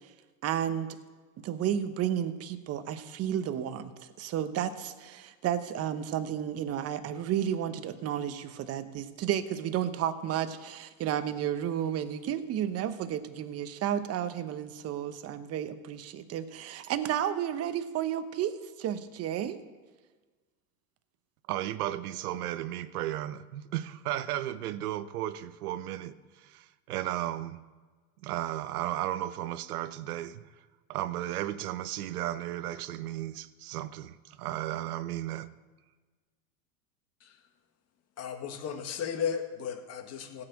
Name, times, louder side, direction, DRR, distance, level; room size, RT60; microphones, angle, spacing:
voice 1, 0.4-0.9 1.4-19.6, right 10 dB, 30° right, 1.0 m, -32 dB
voice 2, 21.5-27.6 28.2-30.4 30.9-35.5, right 13 dB, 75° right, 0.9 m, -34 dB
voice 3, 38.2-40.4, left 7 dB, 35° left, 1.7 m, -35 dB
16.5 x 5.9 x 7.7 m
hypercardioid pair, 110°, 45 cm